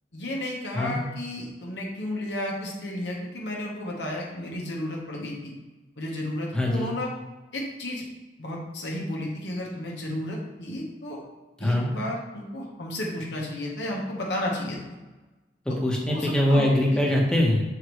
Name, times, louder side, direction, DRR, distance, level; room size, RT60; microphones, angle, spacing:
voice 1, 0.1-5.5 6.0-7.1 7.5-8.0 8.4-11.2 11.6-14.8 16.1-17.0, left 1 dB, 80° left, -2 dB, 1.3 m, -32 dB
voice 2, 6.5-6.9 11.6-11.9 15.6-17.6, left 1 dB, 5° left, -3 dB, 1.1 m, -23 dB
6.9 x 4.7 x 3.2 m, 1.2 s
head